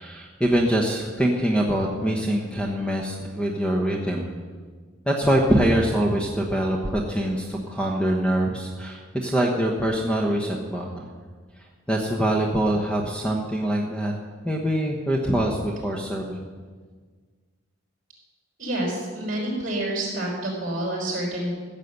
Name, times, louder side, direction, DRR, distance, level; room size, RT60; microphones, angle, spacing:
voice 1, 0.0-4.3 5.1-11.1 11.6-14.1 14.4-16.4, right 1 dB, 5° left, 0 dB, 1.0 m, -24 dB
voice 2, 18.6-21.5, right 1 dB, 40° right, -2 dB, 5.1 m, -28 dB
15.0 x 7.4 x 8.1 m, 1.5 s
head